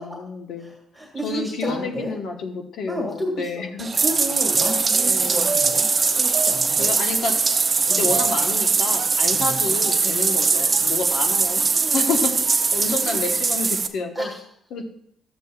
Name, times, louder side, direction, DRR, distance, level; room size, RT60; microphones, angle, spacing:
voice 1, 0.0-0.7 1.2-3.9 4.9-5.5 6.8-7.3 7.9-12.3 12.7-14.3 14.7-14.8, left 4 dB, 75° left, 4 dB, 1.1 m, -29 dB
voice 2, 0.6-2.2 2.9-3.6 4.0-5.9 6.1-7.0 7.9-8.2 9.3-9.9 10.5-10.9 11.5-12.0 12.8-13.2 14.2-14.4, right 1 dB, ahead, -1 dB, 1.8 m, -32 dB
Bathtub (filling or washing), 3.8-13.9, right 4 dB, 35° right, 0.7 m, -21 dB
sound 1, 4.6-11.8 12.2-13.6 14.0-14.1, right 5 dB, 65° right, 0.8 m, -36 dB
12.0 x 8.1 x 2.4 m, 0.67 s
cardioid pair, 95°, 0 cm